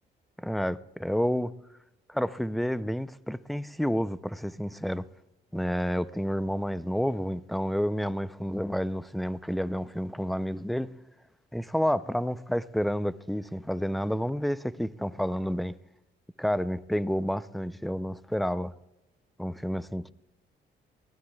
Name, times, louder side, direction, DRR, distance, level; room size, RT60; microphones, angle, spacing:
voice 1, 0.4-1.5 2.1-5.1 5.5-10.9 11.5-15.8 16.4-18.7 19.4-20.1, equal, ahead, 0.4 m, -30 dB
22.5 x 16.5 x 2.3 m
cardioid pair, 90°, 20 cm